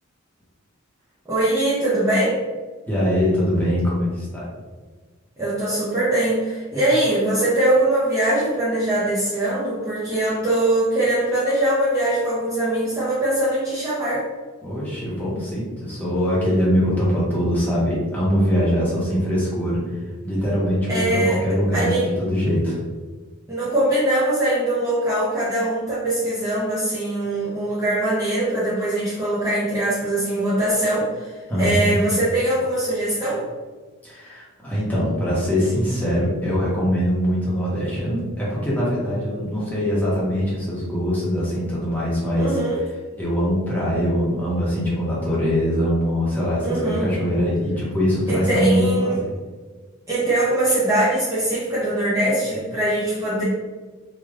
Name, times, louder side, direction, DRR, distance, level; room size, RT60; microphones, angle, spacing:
voice 1, 1.3-2.4 5.4-14.2 20.9-21.4 21.7-22.1 23.5-33.5 42.3-42.8 46.6-47.1 48.3-49.2 50.1-53.4, right 1 dB, 15° right, -10 dB, 0.6 m, -22 dB
voice 2, 2.9-4.5 14.6-22.8 31.5-32.0 34.0-42.5 43.2-49.3, equal, 10° left, -8 dB, 1.1 m, -22 dB
3.3 x 2.5 x 3.5 m, 1.4 s
head